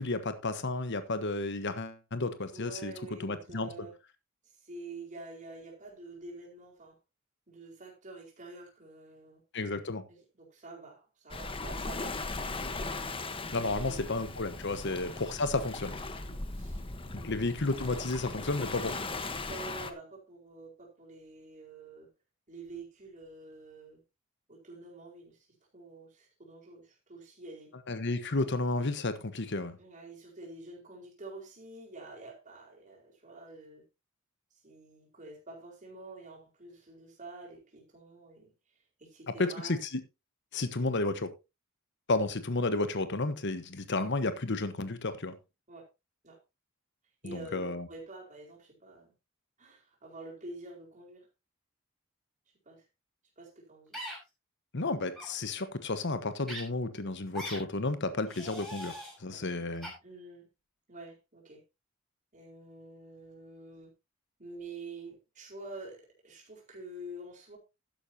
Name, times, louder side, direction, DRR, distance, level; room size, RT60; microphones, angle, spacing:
voice 1, 0.0-2.9 3.2-3.7 9.5-10.0 13.5-16.0 17.2-19.0 27.9-29.8 39.4-40.0 40.5-41.3 42.1-45.3 47.2-47.9 54.7-59.9, left 2 dB, 60° left, 1.2 m, -32 dB
voice 2, 2.5-4.0 4.5-7.0 7.5-9.4 10.1-12.5 13.6-14.1 14.8-15.0 16.2-16.8 17.2-17.3 19.5-22.1 22.5-24.0 24.5-25.5 25.7-27.7 29.8-33.9 34.6-38.5 39.0-39.8 45.7-45.8 46.2-46.4 47.2-49.1 49.6-51.3 52.6-52.8 53.4-54.0 59.3-59.4 60.0-60.5 60.9-61.6 62.3-63.9 64.4-67.6, right 2 dB, 40° right, 4.6 m, -48 dB
Waves surf, 11.3-19.9, left 3 dB, 25° left, 1.1 m, -38 dB
sound 1, 53.9-54.2 55.1-55.3 56.5-56.6 57.3-57.6 58.3-59.1 59.8-59.9, equal, ahead, 5.7 m, -40 dB
12.0 x 10.5 x 2.8 m
head